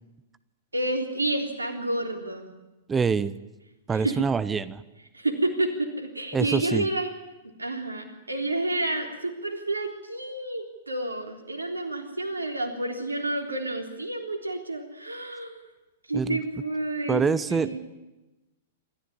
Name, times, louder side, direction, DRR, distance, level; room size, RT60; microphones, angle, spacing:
voice 1, 0.7-2.5 3.9-4.2 5.1-7.1 7.4-15.6 16.1-17.8, right 2 dB, 90° right, 3 dB, 3.5 m, -30 dB
voice 2, 2.9-3.4 3.9-4.8 6.3-6.9 16.1-16.4 17.1-17.8, right 5 dB, 15° right, 16 dB, 0.8 m, -25 dB
26.5 x 14.0 x 9.9 m, 1.1 s
figure-of-eight pair, 105°, 0 cm